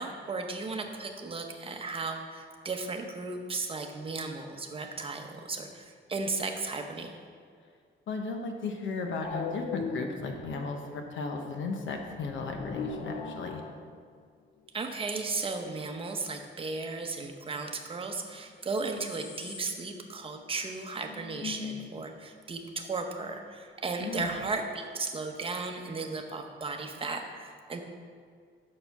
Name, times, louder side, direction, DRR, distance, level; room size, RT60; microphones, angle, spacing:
voice 1, 0.0-7.1 14.7-27.8, right 3 dB, 25° right, 3 dB, 0.9 m, -35 dB
voice 2, 8.1-13.6 24.0-24.3, left 3 dB, 70° left, 3 dB, 1.0 m, -35 dB
sound 1, 9.2-10.5 12.0-14.2 18.3-18.4 18.6-20.0 20.2-20.3 20.6-20.7 21.0-22.0 24.2-24.5, left 5 dB, 45° left, 0.7 m, -39 dB
6.8 x 6.5 x 5.9 m, 2.1 s
cardioid pair, 140°, 21 cm